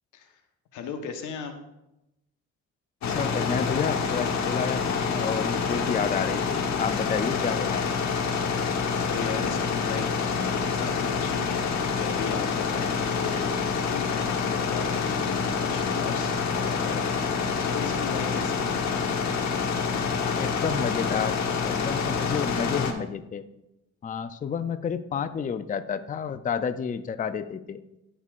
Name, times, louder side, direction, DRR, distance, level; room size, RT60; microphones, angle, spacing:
voice 1, 0.7-1.5 9.0-11.6 12.0-13.5 13.9-18.8, left 6 dB, 85° left, 6 dB, 1.1 m, -36 dB
sound 1, 3.0-22.9, left 5 dB, 65° left, 1.1 m, -27 dB
voice 2, 3.1-8.0 20.2-21.4 21.6-23.4 24.0-27.8, left 6 dB, 25° left, 11 dB, 0.5 m, -30 dB
16.0 x 5.5 x 2.5 m, 0.91 s
cardioid pair, 90°, 30 cm